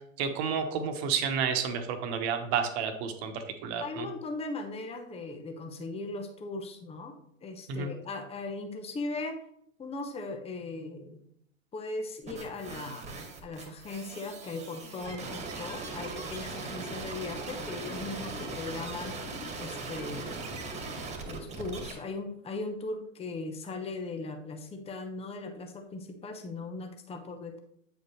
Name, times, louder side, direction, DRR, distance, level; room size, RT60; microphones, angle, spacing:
voice 1, 0.2-4.1 7.7-7.9, right 6 dB, 50° right, 6 dB, 1.3 m, -31 dB
voice 2, 3.8-9.4 9.8-11.2 11.7-13.0 13.4-19.2 19.6-20.6 21.2-27.6, left 3 dB, 15° left, 6 dB, 0.9 m, -38 dB
sound 1, 12.3-21.9, right 3 dB, 15° right, 1.8 m, -39 dB
8.5 x 5.3 x 3.1 m, 0.70 s
hypercardioid pair, 95°, 39 cm